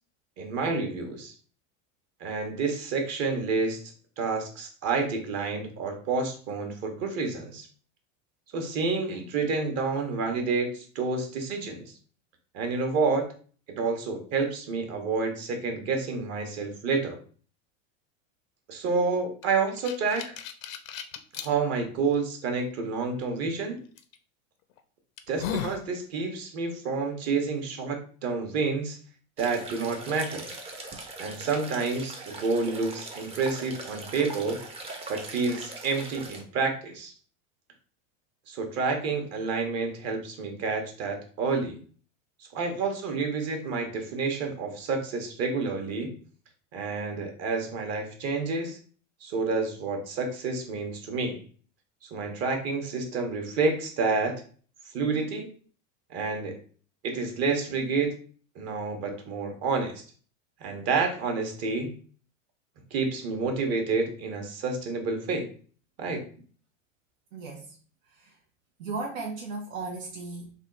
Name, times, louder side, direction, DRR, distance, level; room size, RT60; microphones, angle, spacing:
voice 1, 0.4-1.3 2.2-3.8 4.2-7.7 8.5-11.9 12.5-13.3 13.7-17.2 18.7-20.4 21.4-23.8 25.3-29.0 29.4-30.5 31.2-34.6 35.1-37.1 38.5-41.8 42.5-46.2 46.7-48.8 49.2-51.4 52.1-54.4 54.9-55.5 56.1-56.6 57.0-58.1 58.6-60.0 60.6-61.9 62.9-65.5 66.0-66.2, right 4 dB, 40° right, 3 dB, 1.0 m, -29 dB
sound 1, 19.4-21.5 22.1-22.2 24.0-24.2 24.7-24.8 25.2-25.8, left 8 dB, 90° left, 0.6 m, -35 dB
sound 2, 29.4-36.4, right 2 dB, 15° right, 0.5 m, -41 dB
voice 2, 67.3-67.8 68.0-68.4 68.8-70.5, right 3 dB, 80° right, -1 dB, 0.9 m, -36 dB
3.6 x 2.3 x 3.7 m, 0.42 s
supercardioid pair, 135°, 39 cm